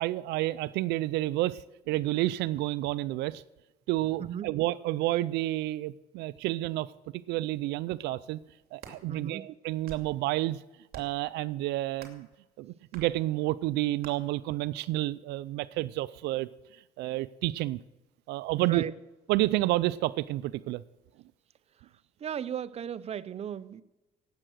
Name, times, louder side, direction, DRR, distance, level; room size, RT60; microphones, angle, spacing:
voice 1, 0.0-3.4 3.9-6.9 7.3-8.4 8.7-10.6 10.9-12.3 12.6-16.5 17.0-17.8 18.3-18.8 19.3-20.8, right 17 dB, 85° right, 17 dB, 0.4 m, -30 dB
voice 2, 4.2-4.5 9.1-9.4 18.6-18.9 22.2-23.8, right 8 dB, 40° right, 16 dB, 0.6 m, -36 dB
sound 1, 8.6-9.0 9.6-10.2 10.9-11.2 12.0-12.3 12.9-13.1 14.0-14.1, right 8 dB, 60° right, 2.7 m, -47 dB
18.0 x 7.7 x 6.3 m, 1.1 s
cardioid pair, 110°, 17 cm